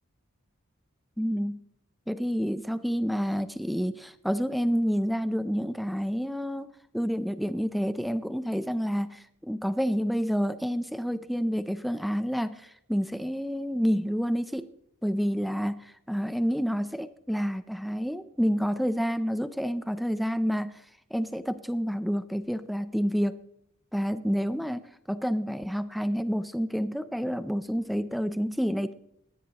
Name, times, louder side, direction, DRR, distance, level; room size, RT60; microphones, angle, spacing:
voice 1, 1.2-1.6 2.1-14.7 15.0-23.4 23.9-28.9, equal, ahead, 12 dB, 0.5 m, -29 dB
19.5 x 16.5 x 3.0 m, 0.75 s
head